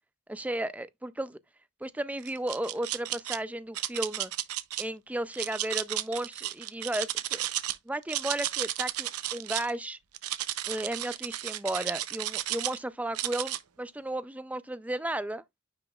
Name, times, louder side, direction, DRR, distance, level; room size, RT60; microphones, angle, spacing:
voice 1, 0.3-1.4 1.8-4.3 4.8-7.4 7.9-10.0 10.7-15.6, right 1 dB, 5° right, 0.3 m, -34 dB
sound 1, 2.2-3.4 3.7-4.8 5.3-7.8 8.0-9.7 10.1-12.8 13.1-13.6, right 14 dB, 85° right, 0.7 m, -33 dB
9.5 x 4.9 x 2.3 m
head